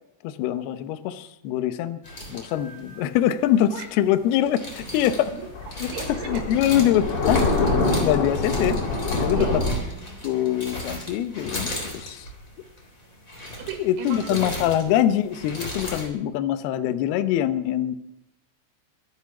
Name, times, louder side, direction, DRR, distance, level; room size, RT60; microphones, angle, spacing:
voice 1, 0.2-2.0 2.3-5.3 5.8-5.9 6.2-7.5 8.0-8.8 9.1-9.5 10.2-12.3 13.8-17.9, left 11 dB, 85° left, 10 dB, 2.2 m, -24 dB
sound 1, 2.0-16.1, left 1 dB, 20° left, 3.3 m, -36 dB
Thunder, 4.8-9.7, left 3 dB, 60° left, 5.6 m, -25 dB
voice 2, 5.9-6.4 9.4-10.3 13.3-14.6, right 8 dB, 75° right, 4 dB, 3.8 m, -35 dB
24.5 x 8.2 x 6.0 m, 0.83 s
omnidirectional pair, 5.8 m